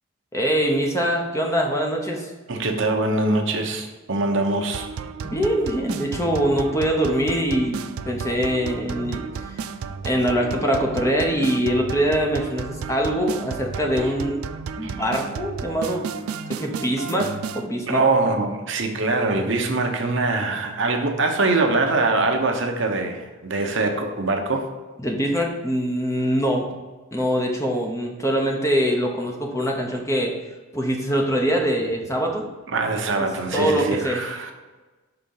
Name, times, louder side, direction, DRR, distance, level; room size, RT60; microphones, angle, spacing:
voice 1, 0.3-2.3 5.2-9.6 10.0-14.5 14.8-16.1 16.5-18.1 25.0-26.7 27.1-30.3 30.7-32.5 33.2-33.3 33.5-34.2, equal, 15° left, 1 dB, 0.8 m, -23 dB
voice 2, 2.5-4.9 14.8-14.9 17.9-24.7 32.7-34.5, right 3 dB, 60° right, 3 dB, 0.8 m, -23 dB
sound 1, 4.7-17.7, right 5 dB, 85° right, 0.4 m, -33 dB
5.8 x 3.7 x 5.4 m, 1.2 s
head